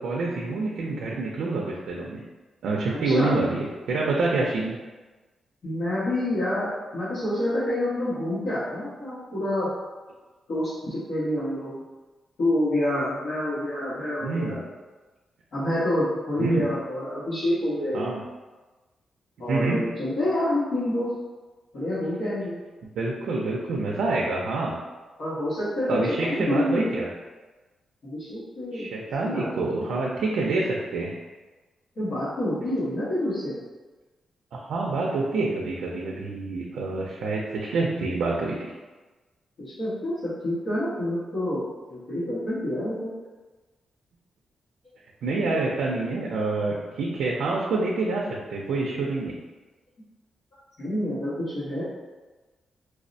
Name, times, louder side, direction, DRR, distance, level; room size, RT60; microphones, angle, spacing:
voice 1, 0.0-2.2 2.6-4.7 14.2-14.6 16.4-16.6 17.9-18.2 19.5-19.8 23.0-24.8 25.9-27.1 28.7-31.1 34.5-38.7 45.2-48.2 48.5-49.4, right 3 dB, 90° right, -3 dB, 0.4 m, -27 dB
voice 2, 3.0-3.3 5.6-9.7 10.5-11.7 12.4-14.6 15.5-18.1 19.4-21.1 21.7-22.6 25.2-26.9 28.0-28.9 29.2-29.8 32.0-33.6 39.8-41.6 41.9-43.1 50.8-51.8, left 1 dB, 60° left, -12 dB, 1.1 m, -27 dB
4.6 x 2.1 x 2.6 m, 1.2 s
wide cardioid pair, 145°, 0 cm